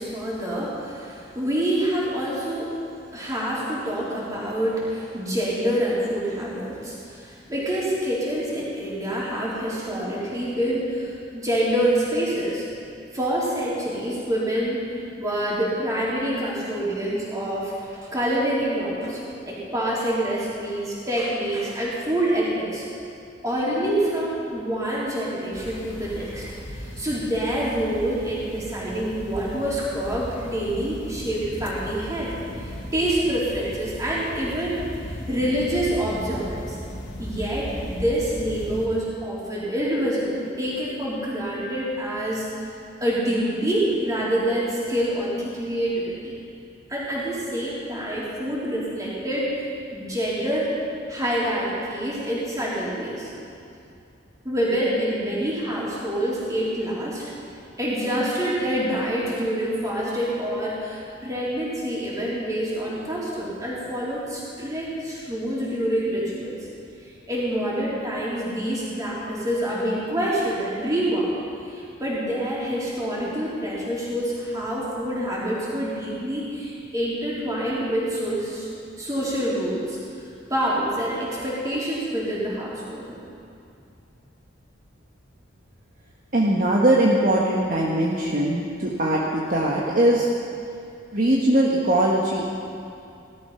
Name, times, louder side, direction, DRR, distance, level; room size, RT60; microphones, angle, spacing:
voice 1, 0.0-2.7 3.1-12.7 13.1-14.8 15.2-22.8 23.4-26.5 26.7-32.3 32.6-34.8 35.3-36.8 37.2-42.5 43.0-46.4 46.9-50.7 51.1-53.3 54.4-57.3 57.8-66.7 67.3-71.3 71.6-78.7 79.0-80.0 80.5-83.1, right 1 dB, 15° right, -7 dB, 3.8 m, -26 dB
sound 1, 25.5-38.9, equal, 80° left, 2.4 m, -37 dB
voice 2, 86.3-90.3 91.1-92.4, right 1 dB, 45° right, -4 dB, 1.4 m, -21 dB
17.5 x 13.0 x 5.7 m, 2.6 s
head